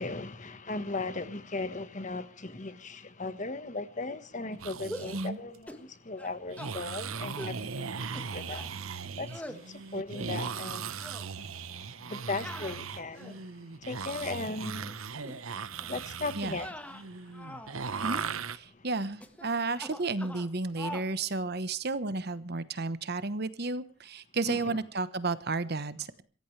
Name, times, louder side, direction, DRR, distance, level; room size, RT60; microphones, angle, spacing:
voice 1, 0.0-11.1 11.9-13.4 13.8-15.0 15.9-16.8 18.7-18.8 24.5-24.8, left 3 dB, 35° left, 1.4 m, -37 dB
sound 1, 4.5-5.3 6.5-18.6, right 6 dB, 85° right, 1.0 m, -38 dB
sound 2, 4.9-5.2 5.7-5.9 6.2-6.7 7.4-7.6 8.1-8.7 9.3-9.6 10.1-10.7 11.0-11.3 12.4-13.5 14.0-14.5 15.2-15.4 15.8-16.0 16.5-17.8 18.0-18.3 19.2-19.5 19.7-20.5 20.8-21.1, left 1 dB, 5° left, 1.5 m, -44 dB
voice 2, 18.5-26.2, right 3 dB, 50° right, 1.1 m, -32 dB
27.5 x 15.0 x 3.3 m
head